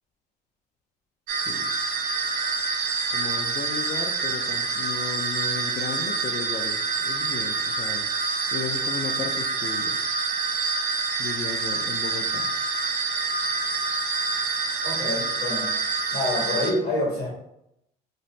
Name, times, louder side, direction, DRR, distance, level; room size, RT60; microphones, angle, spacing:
voice 1, 1.3-1.7 3.1-8.1 8.5-10.0 11.2-12.5, left 6 dB, 45° left, 0 dB, 0.4 m, -35 dB
sound 1, 1.3-16.7, right 4 dB, 60° right, 0.6 m, -27 dB
voice 2, 14.8-15.8 16.1-17.3, left 2 dB, 65° left, -3 dB, 1.4 m, -27 dB
2.6 x 2.0 x 3.1 m, 0.82 s
cardioid pair, 110°, 17 cm